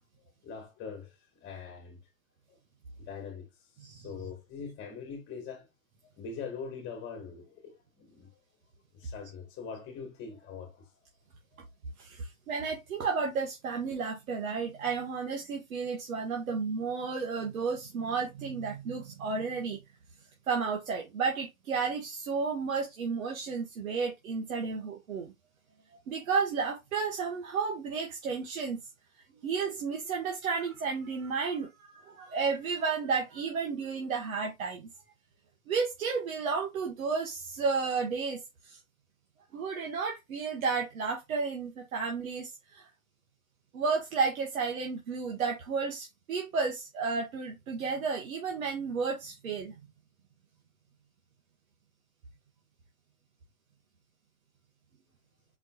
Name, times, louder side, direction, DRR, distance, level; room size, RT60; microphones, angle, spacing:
voice 1, 0.4-1.1 1.4-2.0 3.0-3.5 4.0-5.7 6.2-8.3 8.9-10.8, left 5 dB, 30° left, 1.9 m, -42 dB
voice 2, 12.0-19.8 20.5-25.3 26.1-28.8 29.4-34.9 35.7-38.4 38.7-38.8 39.5-42.8 43.7-49.7, right 5 dB, 80° right, 1.6 m, -32 dB
5.1 x 4.2 x 2.4 m
hypercardioid pair, 130°, 41 cm